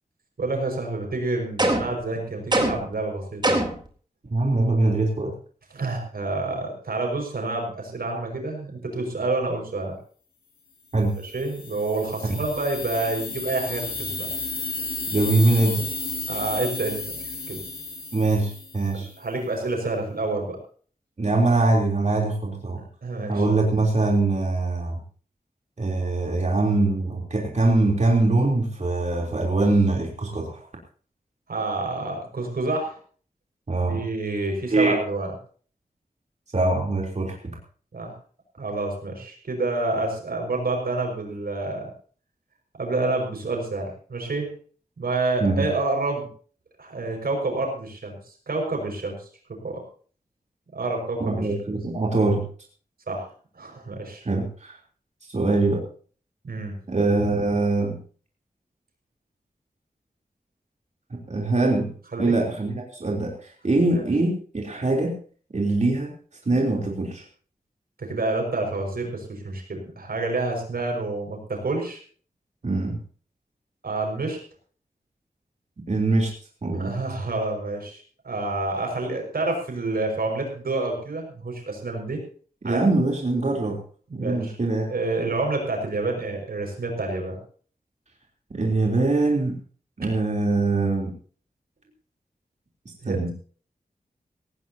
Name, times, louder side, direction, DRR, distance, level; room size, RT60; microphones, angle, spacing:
voice 1, 0.4-3.6 5.7-9.9 11.2-14.3 16.3-17.0 17.5-17.6 18.9-20.6 23.0-23.5 31.5-33.0 33.9-35.3 37.9-38.1 38.6-41.8 42.8-44.5 45.0-46.3 46.8-48.2 48.5-49.1 49.6-49.8 50.7-51.5 53.1-53.3 53.5-54.2 56.4-56.8 62.1-62.3 68.0-72.0 73.8-74.4 76.7-82.2 82.6-82.9 84.1-84.5 84.8-87.3 93.0-93.3, right 2 dB, 90° right, 2 dB, 5.8 m, -28 dB
sound 1, 1.6-2.0 2.5-2.9 3.4-3.9, right 1 dB, 30° right, 4.0 m, -22 dB
voice 2, 4.3-5.3 10.9-11.2 12.3-12.4 15.1-15.9 18.1-19.1 21.2-22.8 23.3-25.0 25.8-30.7 33.7-34.0 34.7-35.0 36.5-37.6 45.4-45.7 51.2-52.4 54.2-54.8 55.3-55.8 56.9-58.0 61.1-61.9 62.2-65.1 65.5-66.1 66.5-67.2 72.6-73.0 75.9-76.3 76.6-77.0 82.6-83.8 84.1-84.9 88.5-89.6 90.0-91.1 93.1-93.3, right 2 dB, 50° right, -1 dB, 3.6 m, -23 dB
sound 2, 11.2-19.1, left 3 dB, 85° left, 3.9 m, -33 dB
18.5 x 17.0 x 2.9 m, 0.44 s
wide cardioid pair, 85°, 15 cm